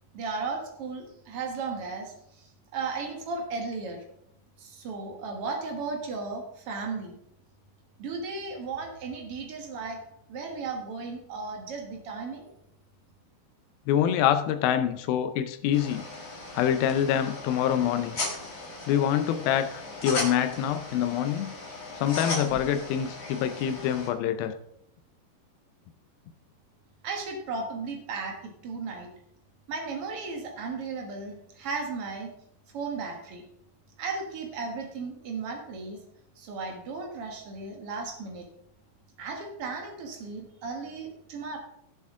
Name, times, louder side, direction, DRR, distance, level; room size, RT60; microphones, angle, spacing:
voice 1, 0.1-4.0 4.6-7.1 8.0-10.0 10.3-12.5 27.0-29.1 29.7-32.3 32.7-33.4 34.0-36.0 36.3-38.4 39.2-41.6, right 4 dB, 75° right, 2 dB, 1.3 m, -35 dB
voice 2, 13.9-16.0 16.5-18.2 18.9-21.5 22.0-24.6, left 10 dB, 85° left, 9 dB, 2.1 m, -26 dB
sound 1, 15.7-24.1, left 2 dB, 40° left, 1.1 m, -37 dB
16.5 x 7.1 x 3.7 m, 0.77 s
omnidirectional pair, 5.0 m